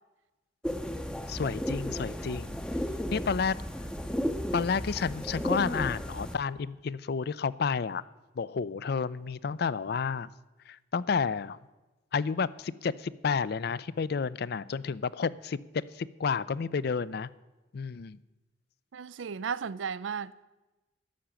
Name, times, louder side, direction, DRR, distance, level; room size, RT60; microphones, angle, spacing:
sound 1, 0.6-6.4, equal, 5° left, 0.6 m, -34 dB
voice 1, 1.3-2.6 3.1-3.5 4.5-8.0 8.4-10.3 10.7-11.6 12.1-15.6 15.9-17.3 17.7-18.2, left 5 dB, 55° left, 0.4 m, -31 dB
voice 2, 18.9-20.4, right 6 dB, 90° right, 0.4 m, -35 dB
12.5 x 7.0 x 8.8 m
head